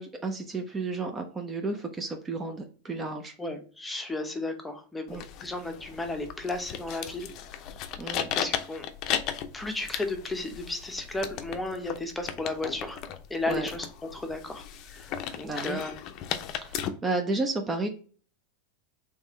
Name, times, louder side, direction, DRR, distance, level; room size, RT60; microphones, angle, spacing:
voice 1, 0.0-3.3 5.1-5.2 8.0-8.3 13.5-13.7 15.4-15.8 16.6-17.9, right 3 dB, 20° right, 4 dB, 0.6 m, -32 dB
voice 2, 3.4-7.3 8.3-8.9 9.5-13.0 13.3-13.9 14.1-15.9, left 2 dB, 10° left, 5 dB, 0.8 m, -34 dB
sound 1, 5.1-16.9, left 9 dB, 50° left, 0.5 m, -36 dB
3.5 x 3.2 x 3.1 m, 0.41 s
hypercardioid pair, 110°, 0 cm